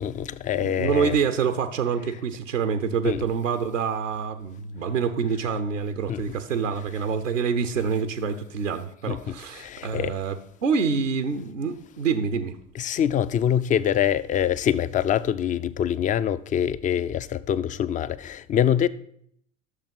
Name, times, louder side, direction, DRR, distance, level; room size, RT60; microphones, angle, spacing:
voice 1, 0.0-1.2 3.0-3.3 6.1-6.2 9.1-10.1 12.7-18.9, left 9 dB, 20° left, 0.4 m, -25 dB
voice 2, 0.5-10.4 10.6-12.6, right 6 dB, 80° right, 0.8 m, -26 dB
13.0 x 6.9 x 5.5 m
figure-of-eight pair, 70°, 37 cm